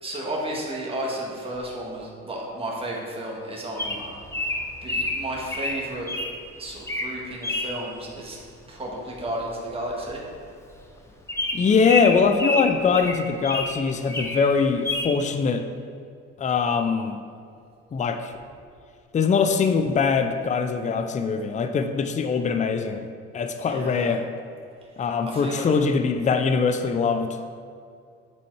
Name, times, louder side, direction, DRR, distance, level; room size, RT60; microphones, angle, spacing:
voice 1, 0.0-4.2 4.8-6.1 6.6-8.4 8.7-10.2 23.6-24.1 25.3-25.7, right 1 dB, 20° right, -3 dB, 1.7 m, -33 dB
Bird vocalization bird call bird song, 3.8-6.3 6.8-7.1 7.4-7.7 9.2-9.4 9.7-9.8 10.1-10.2 10.7-10.8 11.3-13.7 14.1-14.4 14.8-15.1, left 2 dB, 10° left, 0.9 m, -28 dB
voice 2, 11.5-15.7 16.4-17.2 17.9-18.3 19.1-23.1 23.3-24.2 25.0-27.4, left 5 dB, 25° left, 7 dB, 0.5 m, -22 dB
8.4 x 4.2 x 4.6 m, 2.3 s
cardioid pair, 90°, 29 cm